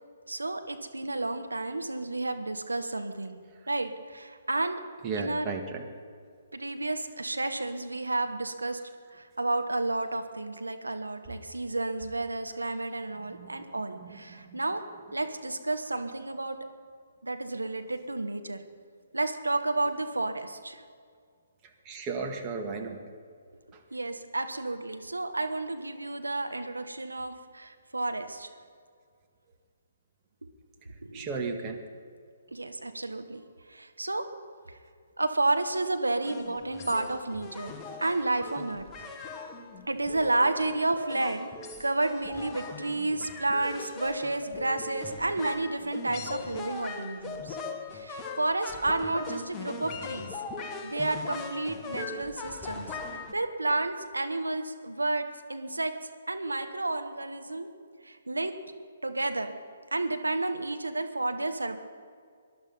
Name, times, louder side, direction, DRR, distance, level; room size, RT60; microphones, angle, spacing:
voice 1, 0.3-3.4 3.7-4.8 5.2-5.5 6.5-8.8 9.1-14.8 15.1-16.6 17.2-18.6 19.1-20.8 23.9-28.5 31.0-31.3 32.5-33.4 33.7-34.3 35.2-37.7 38.0-38.9 39.9-41.5 41.8-47.6 47.9-50.3 50.6-52.9 53.1-55.9 56.3-57.7 58.0-58.5 59.0-59.5 59.9-61.8, right 2 dB, 85° right, 7 dB, 1.4 m, -31 dB
voice 2, 5.0-5.9 11.3-11.4 13.2-13.7 14.0-14.6 21.6-23.0 23.7-23.8 31.1-31.8, right 4 dB, 25° right, 3 dB, 1.9 m, -36 dB
sound 1, 36.3-53.3, left 4 dB, 20° left, 1.2 m, -40 dB
19.5 x 11.5 x 5.6 m, 2.1 s
figure-of-eight pair, 135°, 0 cm